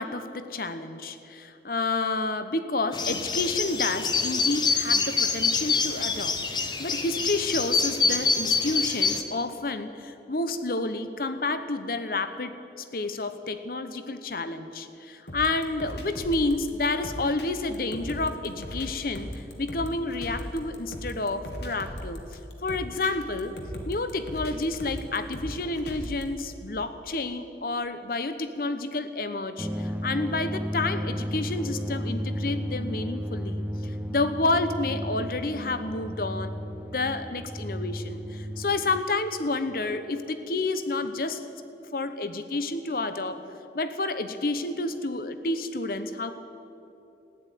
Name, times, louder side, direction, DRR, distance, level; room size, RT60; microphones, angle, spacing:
voice 1, 0.0-22.2 22.6-23.5 23.9-36.6 36.9-41.4 41.9-43.4 43.7-46.3, left 2 dB, 55° left, 10 dB, 0.9 m, -30 dB
sound 1, 2.9-9.2, left 4 dB, 25° left, 0.8 m, -26 dB
sound 2, 15.3-26.4, equal, 70° left, 2.0 m, -38 dB
sound 3, 29.6-39.0, equal, 10° right, 0.5 m, -33 dB
15.0 x 10.5 x 9.2 m, 2.9 s
head